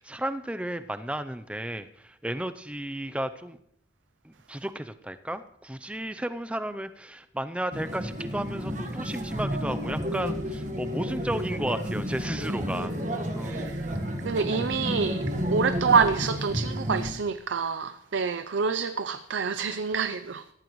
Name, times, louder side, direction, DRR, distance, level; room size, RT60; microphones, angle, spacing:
voice 1, 0.0-3.6 4.2-12.9 13.3-13.7, right 1 dB, 5° right, 0.5 m, -33 dB
sound 1, 7.7-17.1, equal, 40° right, 1.5 m, -31 dB
voice 2, 13.5-13.9 14.2-15.2 15.5-20.4, right 5 dB, 85° right, 0.5 m, -27 dB
16.5 x 14.0 x 3.1 m
head